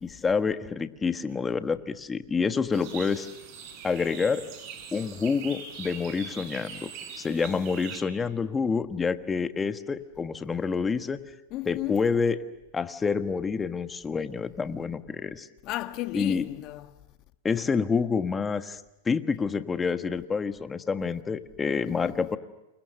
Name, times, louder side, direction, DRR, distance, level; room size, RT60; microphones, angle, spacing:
voice 1, 0.0-3.3 3.8-4.4 4.9-6.9 7.2-11.2 11.6-12.4 12.7-15.5 16.1-16.4 17.4-18.8 19.0-22.4, left 5 dB, 15° left, 1.4 m, -28 dB
sound 1, 2.7-8.0, right 6 dB, 45° right, 6.9 m, -42 dB
voice 2, 11.5-12.0 15.6-17.0 21.8-22.3, left 17 dB, 40° left, 1.3 m, -34 dB
29.5 x 28.5 x 6.5 m
hypercardioid pair, 125°, 0 cm